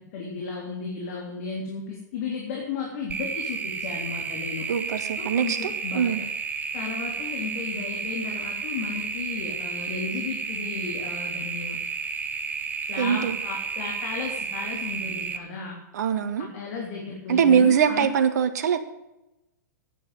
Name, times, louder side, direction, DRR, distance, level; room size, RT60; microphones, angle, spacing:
voice 1, 0.1-4.7 5.1-6.3 6.7-11.8 12.9-15.8 16.4-18.2, left 5 dB, 50° left, 0 dB, 3.4 m, -34 dB
sound 1, 3.1-15.4, right 5 dB, 15° right, 1.0 m, -32 dB
voice 2, 4.7-6.2 13.0-13.4 15.9-16.5 17.3-18.9, right 7 dB, 65° right, 9 dB, 1.7 m, -22 dB
10.0 x 9.6 x 7.8 m, 0.93 s
hypercardioid pair, 115°, 10 cm